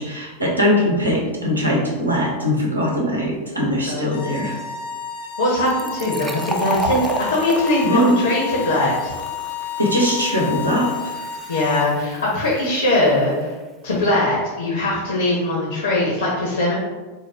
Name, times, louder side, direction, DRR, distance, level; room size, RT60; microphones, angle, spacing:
voice 1, 0.0-4.6 7.8-8.2 9.8-11.1, equal, 85° right, -2 dB, 0.8 m, -21 dB
voice 2, 3.9-4.3 5.4-9.1 11.5-13.5 13.8-16.7, left 1 dB, 70° left, -3 dB, 0.8 m, -21 dB
sound 1, 4.1-11.9, left 8 dB, 55° left, 0.4 m, -30 dB
Fill (with liquid), 5.7-13.0, right 2 dB, 15° right, 0.3 m, -33 dB
3.9 x 2.3 x 3.4 m, 1.3 s
figure-of-eight pair, 90°, 0 cm